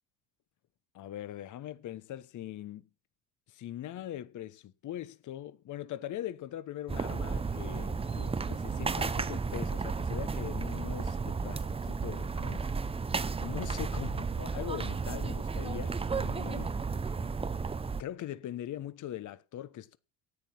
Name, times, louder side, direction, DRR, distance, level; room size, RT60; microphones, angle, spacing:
voice 1, 0.9-2.9 3.5-12.7 13.4-16.7 18.0-20.0, left 12 dB, 45° left, 1.0 m, -41 dB
sound 1, 6.9-18.0, right 4 dB, 15° right, 0.6 m, -33 dB
13.5 x 9.2 x 5.9 m
supercardioid pair, 85°, 42 cm